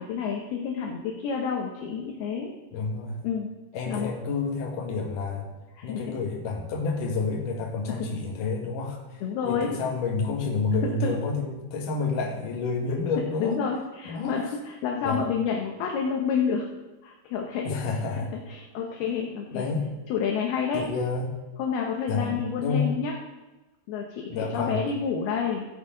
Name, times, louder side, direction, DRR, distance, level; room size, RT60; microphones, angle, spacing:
voice 1, 0.0-2.5 3.2-3.5 3.9-4.1 5.7-6.2 7.9-8.1 9.2-9.8 10.8-11.2 12.9-13.0 13.4-16.7 17.0-17.7 18.5-19.6 20.1-20.8 21.6-23.2 23.9-25.7, left 6 dB, 70° left, 0 dB, 2.7 m, -29 dB
voice 2, 2.7-3.2 3.7-5.5 5.8-13.6 14.1-14.3 15.0-15.2 17.6-18.3 19.5-19.9 20.7-21.4 22.1-23.0 24.3-24.8, left 4 dB, 55° left, 0 dB, 2.8 m, -29 dB
15.5 x 8.7 x 3.8 m, 1.1 s
omnidirectional pair, 5.1 m